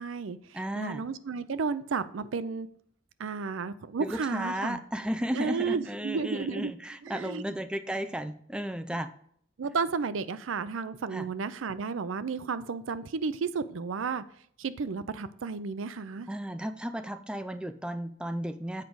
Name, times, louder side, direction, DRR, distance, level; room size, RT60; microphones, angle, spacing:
voice 1, 0.0-2.7 3.2-4.8 5.3-6.7 7.0-7.4 9.6-14.2 14.6-16.3, right 5 dB, 80° right, 14 dB, 0.5 m, -32 dB
voice 2, 0.5-1.0 4.0-9.1 11.1-11.2 16.3-18.8, equal, 5° right, 9 dB, 0.4 m, -34 dB
8.2 x 5.2 x 4.7 m, 0.63 s
head